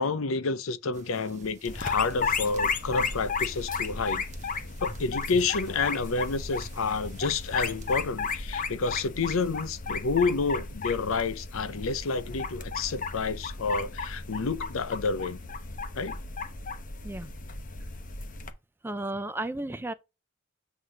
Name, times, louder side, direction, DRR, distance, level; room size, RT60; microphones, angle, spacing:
voice 1, 0.0-4.3 4.8-15.4 15.9-16.2, left 4 dB, 75° left, 0.6 m, -29 dB
sound 1, 0.9-8.1, right 1 dB, 35° right, 1.1 m, -50 dB
sound 2, 1.7-18.5, left 4 dB, 40° left, 0.8 m, -34 dB
voice 2, 18.8-19.9, right 2 dB, 10° right, 0.4 m, -33 dB
8.2 x 2.9 x 4.8 m
head